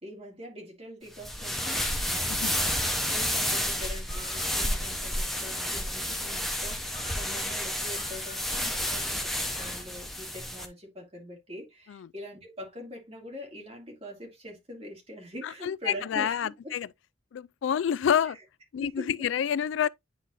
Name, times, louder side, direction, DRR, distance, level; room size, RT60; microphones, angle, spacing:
voice 1, 0.0-2.0 2.7-16.7 18.2-18.3 18.8-19.3, equal, 30° right, 2.8 m, -44 dB
sound 1, 1.1-10.7, left 1 dB, ahead, 0.9 m, -30 dB
sound 2, 1.5-4.9 6.9-10.0, left 2 dB, 25° left, 1.4 m, -51 dB
voice 2, 15.4-16.9 17.3-18.4 18.7-19.9, left 8 dB, 70° left, 0.3 m, -28 dB
9.9 x 4.1 x 2.6 m
head